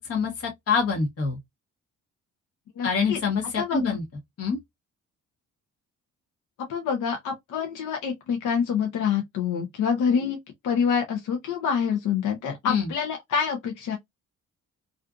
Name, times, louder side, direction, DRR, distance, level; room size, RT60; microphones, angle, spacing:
voice 1, 0.1-1.4 2.8-4.0 4.4-4.6 12.7-12.9, left 5 dB, 50° left, 1.0 m, -25 dB
voice 2, 2.8-3.2 3.6-4.0 6.7-10.4 10.6-14.0, left 7 dB, 80° left, 0.7 m, -26 dB
2.5 x 2.4 x 2.3 m
cardioid pair, 90°, 30 cm